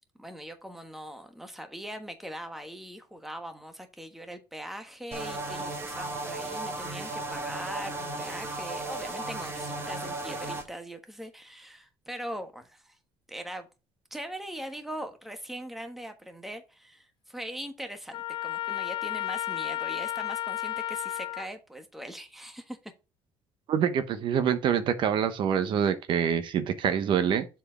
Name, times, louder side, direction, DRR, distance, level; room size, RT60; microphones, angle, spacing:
voice 1, 0.2-13.0 13.3-13.7 14.1-22.9, equal, ahead, 1.3 m, -41 dB
sound 1, 5.1-10.6, right 2 dB, 25° right, 2.1 m, -35 dB
Trumpet, 18.1-21.5, left 12 dB, 55° left, 0.6 m, -33 dB
voice 2, 23.7-27.5, right 8 dB, 55° right, 1.0 m, -26 dB
7.2 x 4.7 x 5.0 m
cardioid pair, 140°, 10 cm